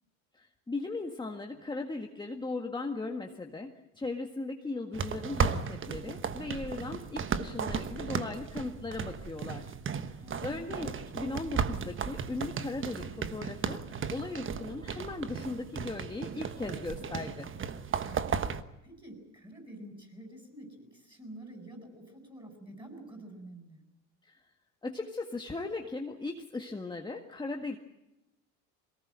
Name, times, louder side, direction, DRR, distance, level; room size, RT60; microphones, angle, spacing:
voice 1, 0.3-9.7 10.0-10.1 10.4-17.5 24.2-24.4 24.8-27.8, left 3 dB, 10° left, 2 dB, 1.7 m, -38 dB
sound 1, 4.9-18.6, right 6 dB, 30° right, 1.2 m, -35 dB
voice 2, 10.2-11.0 18.8-23.8, right 1 dB, 10° right, 4 dB, 7.8 m, -48 dB
23.0 x 18.5 x 8.9 m, 0.92 s
supercardioid pair, 95°, 41 cm